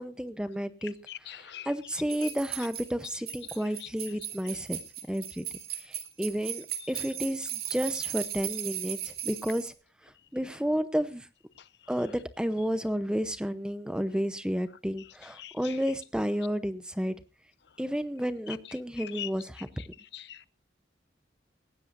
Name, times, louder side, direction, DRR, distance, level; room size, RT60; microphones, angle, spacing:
voice 1, 0.0-0.9 1.7-4.8 5.1-5.4 5.9-9.7 10.3-11.2 11.9-17.2 17.8-19.6, equal, 5° right, 0.8 m, -31 dB
voice 2, 1.1-1.7 2.2-2.3 3.8-3.9 15.4-15.8 19.0-19.3 20.1-20.5, left 12 dB, 65° left, 0.6 m, -41 dB
sound 1, 2.1-9.7, right 10 dB, 55° right, 2.5 m, -37 dB
19.0 x 16.0 x 2.6 m
head